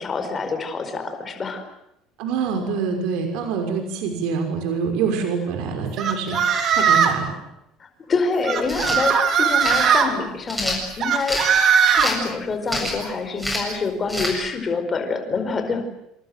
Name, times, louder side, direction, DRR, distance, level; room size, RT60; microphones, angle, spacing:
voice 1, 0.0-1.6 7.8-15.8, left 4 dB, 20° left, 6 dB, 4.9 m, -26 dB
voice 2, 2.2-7.3, right 5 dB, 65° right, 5 dB, 6.1 m, -25 dB
sound 1, 6.0-7.2 8.4-10.1 11.0-12.1, right 7 dB, 35° right, 3.7 m, -18 dB
sound 2, 8.6-9.0 9.6-9.9 10.5-11.5 12.0-12.3 12.7-13.0 13.4-13.7 14.1-14.3, left 1 dB, ahead, 7.6 m, -27 dB
28.5 x 27.0 x 7.8 m, 0.84 s
cardioid pair, 170°, 0 cm